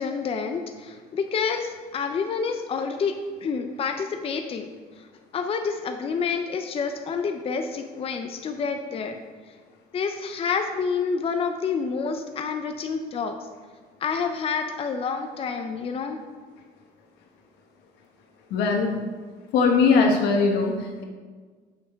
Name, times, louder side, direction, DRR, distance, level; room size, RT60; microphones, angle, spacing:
voice 1, 0.0-3.1 3.4-4.7 5.3-9.2 9.9-13.4 14.0-16.2, left 5 dB, 35° left, 6 dB, 0.5 m, -28 dB
voice 2, 18.5-19.0 19.5-21.0, left 4 dB, 90° left, 2 dB, 1.1 m, -20 dB
6.7 x 5.4 x 3.5 m, 1.5 s
cardioid pair, 110°, 17 cm